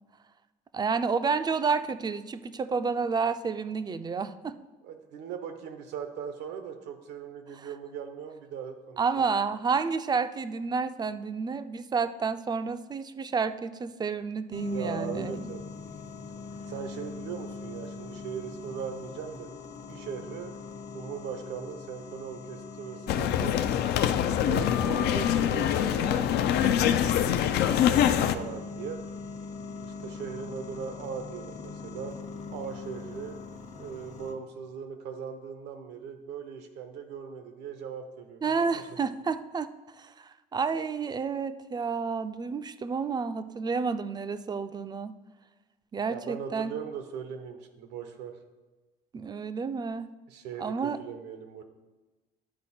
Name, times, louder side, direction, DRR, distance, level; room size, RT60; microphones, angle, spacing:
voice 1, 0.7-4.6 7.5-7.7 9.0-15.5 38.4-45.1 45.9-46.7 49.1-50.1 50.6-51.0, right 5 dB, 25° right, 12 dB, 0.4 m, -30 dB
voice 2, 4.8-9.3 14.7-15.6 16.7-19.5 19.9-20.5 20.9-23.6 24.3-27.3 27.8-29.0 29.8-32.1 32.5-33.4 33.7-38.8 46.1-48.3 50.3-51.6, right 7 dB, 90° right, 7 dB, 0.9 m, -39 dB
sound 1, 14.5-34.3, left 4 dB, 45° left, 0.9 m, -42 dB
sound 2, 23.1-28.4, left 10 dB, 75° left, 0.5 m, -24 dB
10.5 x 4.3 x 4.3 m, 1.2 s
cardioid pair, 110°, 17 cm